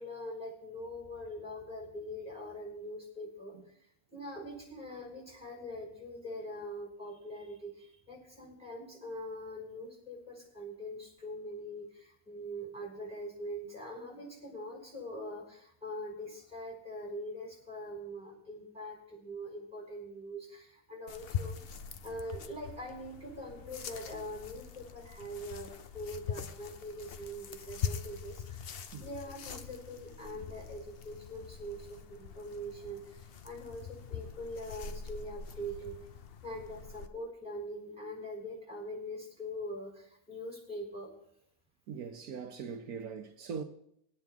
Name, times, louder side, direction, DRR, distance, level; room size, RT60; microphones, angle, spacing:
voice 1, 0.0-3.8 4.1-21.6 22.0-28.7 29.0-35.9 36.4-41.1, equal, 5° right, 5.4 m, -43 dB
sound 1, 21.1-37.1, left 7 dB, 50° left, 0.8 m, -43 dB
voice 2, 41.9-43.6, right 6 dB, 80° right, 1.4 m, -41 dB
21.0 x 9.2 x 3.6 m
omnidirectional pair, 1.5 m